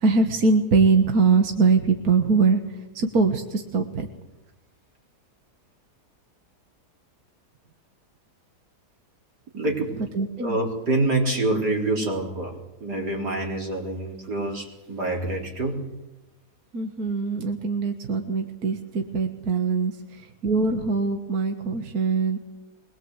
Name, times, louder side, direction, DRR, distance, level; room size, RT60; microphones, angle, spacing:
voice 1, 0.0-2.6 3.0-4.1 10.2-10.6 16.7-19.9 20.4-22.4, right 4 dB, 65° right, 5 dB, 1.9 m, -22 dB
voice 2, 9.5-10.0 10.4-15.8, right 2 dB, 90° right, 0 dB, 4.8 m, -26 dB
23.0 x 21.0 x 8.1 m, 0.97 s
omnidirectional pair, 1.7 m